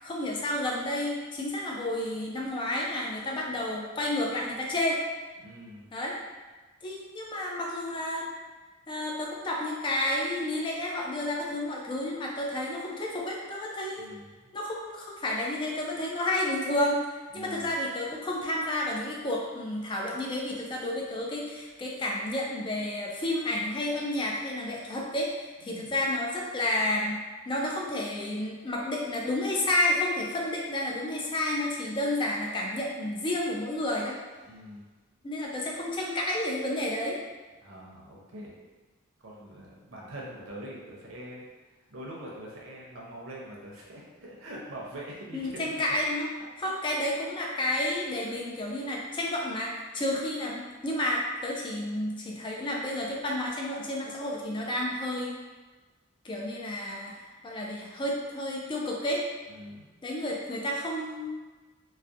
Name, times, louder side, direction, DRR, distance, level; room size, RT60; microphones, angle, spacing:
voice 1, 0.0-5.0 5.9-6.1 6.8-8.3 8.9-14.1 14.5-17.0 17.3-25.3 25.6-27.2 27.5-34.1 35.2-37.2 45.3-46.3 46.6-55.3 56.2-59.2 60.0-61.3, left 1 dB, 25° left, -2 dB, 0.3 m, -31 dB
voice 2, 5.4-5.9 14.0-14.5 17.3-17.7 25.6-26.0 34.5-34.9 37.6-38.6 39.2-41.4 41.9-45.8 46.6-46.7 59.5-59.9, equal, 75° right, -4 dB, 0.6 m, -43 dB
2.3 x 2.1 x 2.6 m, 1.3 s
head